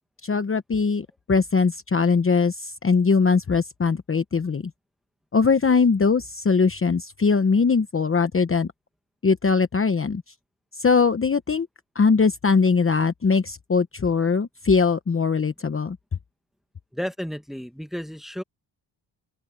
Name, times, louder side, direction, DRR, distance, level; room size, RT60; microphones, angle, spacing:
voice 1, 0.2-4.7 5.3-8.7 9.2-10.2 10.8-11.7 11.9-16.0, left 5 dB, 30° left, 0.9 m, -21 dB
voice 2, 16.9-18.4, equal, ahead, 1.3 m, -32 dB
open air
cardioid pair, 110°, 45 cm